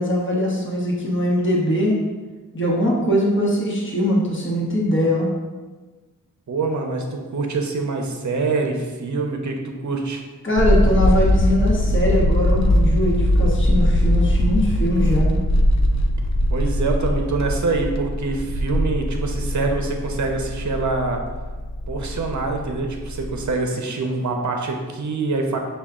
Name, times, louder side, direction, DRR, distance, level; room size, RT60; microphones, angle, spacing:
voice 1, 0.0-1.9 2.5-5.3 10.4-15.3, equal, 35° left, -4 dB, 1.0 m, -21 dB
voice 2, 6.5-10.2 16.5-21.2 21.9-25.6, right 3 dB, 55° right, 3 dB, 0.6 m, -25 dB
sound 1, 10.6-23.5, left 1 dB, 50° left, 0.5 m, -20 dB
5.7 x 2.3 x 3.6 m, 1.3 s
wide cardioid pair, 55°, 34 cm